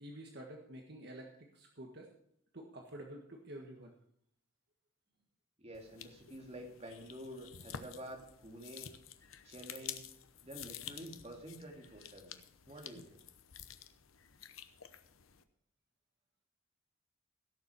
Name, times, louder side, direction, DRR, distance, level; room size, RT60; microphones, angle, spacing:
voice 1, 0.0-2.1 2.5-3.9, right 1 dB, 55° right, 1 dB, 1.6 m, -49 dB
voice 2, 5.6-8.9 9.4-10.0 10.4-12.4 12.7-13.2, right 1 dB, 30° right, 2 dB, 2.5 m, -49 dB
sound 1, 5.7-15.4, left 9 dB, 90° left, 0.9 m, -50 dB
16.5 x 7.0 x 6.0 m, 0.68 s
head